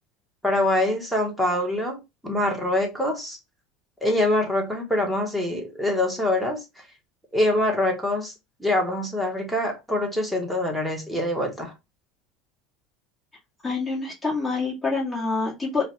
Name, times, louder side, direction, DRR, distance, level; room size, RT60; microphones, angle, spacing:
voice 1, 0.4-3.4 4.0-6.6 7.3-8.3 8.6-11.7, left 1 dB, ahead, 1.3 m, -24 dB
voice 2, 13.6-15.8, left 4 dB, 20° left, 2.1 m, -26 dB
4.7 x 2.4 x 3.0 m
supercardioid pair, 130°, 0 cm